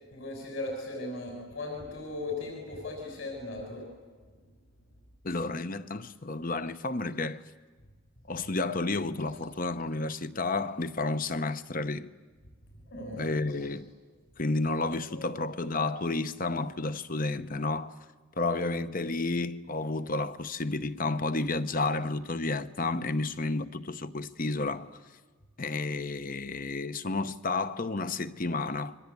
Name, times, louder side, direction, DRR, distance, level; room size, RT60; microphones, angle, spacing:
voice 1, 0.1-3.8 12.9-13.3 15.1-15.3, left 2 dB, 60° left, 6.1 m, -37 dB
voice 2, 5.2-7.4 8.3-12.1 13.1-13.9 14.4-17.9 18.4-25.0 25.6-29.0, left 3 dB, 40° left, 0.8 m, -31 dB
29.5 x 24.0 x 8.4 m
head